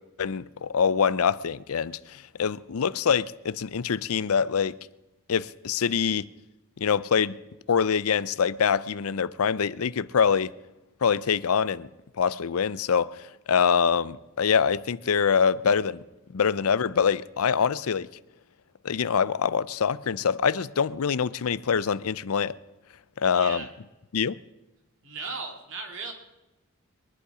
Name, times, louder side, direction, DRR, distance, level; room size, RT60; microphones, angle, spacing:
voice 1, 0.2-4.8 5.3-6.3 6.8-7.4 7.7-10.5 11.0-11.9 12.2-13.2 13.5-16.0 16.3-18.1 18.8-22.6 23.2-23.7 24.1-24.4, left 6 dB, 85° left, 0.5 m, -24 dB
voice 2, 23.3-23.7 25.0-26.1, right 4 dB, 60° right, 2.7 m, -36 dB
22.5 x 11.5 x 4.9 m
head